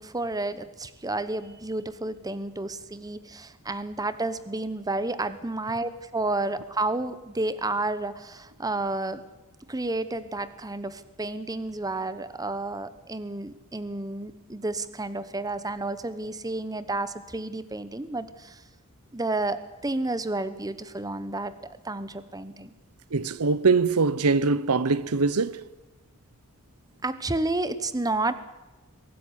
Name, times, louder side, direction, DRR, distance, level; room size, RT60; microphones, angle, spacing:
voice 1, 0.0-9.2 9.7-18.6 19.1-21.5 21.8-22.7 27.0-28.3, right 2 dB, 15° right, 1.0 m, -31 dB
voice 2, 23.1-25.7, right 4 dB, 80° right, 0.8 m, -23 dB
23.0 x 13.0 x 9.8 m
head